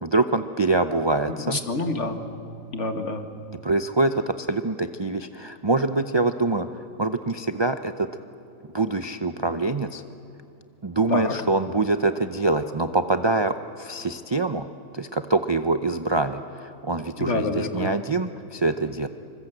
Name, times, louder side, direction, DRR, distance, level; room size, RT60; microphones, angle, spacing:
voice 1, 0.0-1.6 3.6-6.7 7.0-8.1 8.7-10.0 10.8-14.7 14.9-19.1, right 2 dB, 35° right, 8 dB, 0.4 m, -24 dB
voice 2, 1.3-2.2 2.7-3.2 11.1-11.3 17.2-17.9, left 3 dB, 55° left, 6 dB, 2.0 m, -27 dB
26.5 x 24.5 x 8.0 m, 2.7 s
omnidirectional pair, 1.5 m